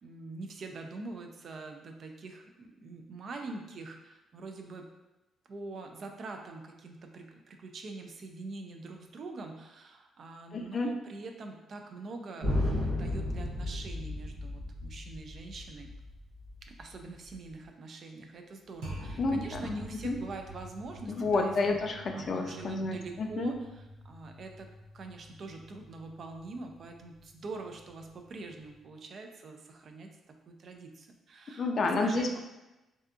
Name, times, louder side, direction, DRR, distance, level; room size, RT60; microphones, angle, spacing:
voice 1, 0.0-4.9 5.5-12.5 12.8-15.9 16.8-21.8 22.1-24.7 24.9-32.4, right 3 dB, 55° right, 4 dB, 0.3 m, -44 dB
voice 2, 10.5-10.9 19.2-20.1 21.1-23.5 31.6-32.4, left 3 dB, 50° left, 3 dB, 0.3 m, -30 dB
sound 1, 12.4-17.5 18.8-28.8, left 1 dB, 80° right, 0.8 m, -39 dB
2.6 x 2.3 x 2.4 m, 1.0 s
cardioid pair, 90°, 0 cm